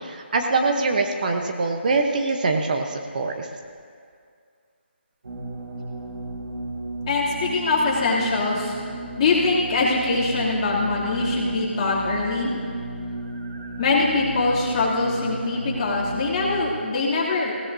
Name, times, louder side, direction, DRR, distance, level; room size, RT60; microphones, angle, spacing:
voice 1, 0.0-3.5, right 3 dB, 45° right, 4 dB, 1.0 m, -23 dB
sound 1, 5.2-16.7, right 2 dB, 70° right, 1.5 m, -34 dB
voice 2, 7.1-8.8 9.2-12.5 13.8-17.5, left 3 dB, 30° left, -6 dB, 2.8 m, -23 dB
19.0 x 16.5 x 2.7 m, 2.2 s
figure-of-eight pair, 160°, 6 cm